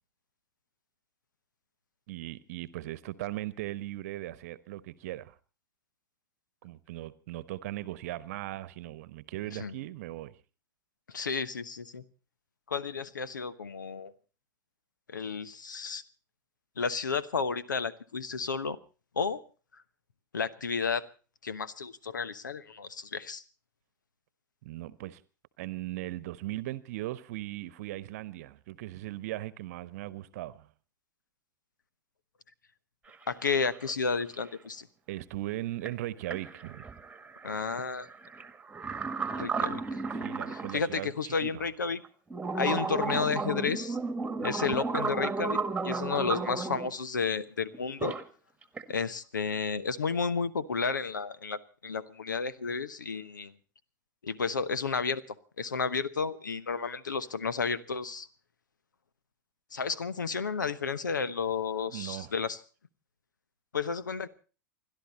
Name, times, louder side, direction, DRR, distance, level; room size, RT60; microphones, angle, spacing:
voice 1, 2.1-5.3 6.6-10.4 24.6-25.2 25.6-30.7 35.1-36.8 39.6-39.7 40.1-41.7 61.9-62.3, right 16 dB, 55° right, 1.1 m, -38 dB
voice 2, 11.1-12.0 12.7-14.1 15.1-16.0 16.8-18.8 19.2-19.4 20.3-21.0 21.4-23.4 33.3-34.9 37.4-38.1 39.4-40.0 40.7-42.0 42.5-44.0 44.4-48.1 48.9-53.5 54.2-55.2 55.6-58.3 59.7-62.6 63.7-64.3, left 5 dB, 75° left, 1.1 m, -32 dB
sound 1, 33.1-33.2 33.4-34.2 35.8-35.9 36.3-40.8 41.3-41.4 42.0-46.9 47.7-48.2 48.6-48.9, right 4 dB, 10° right, 1.7 m, -34 dB
29.0 x 12.0 x 4.1 m
figure-of-eight pair, 90°, 10 cm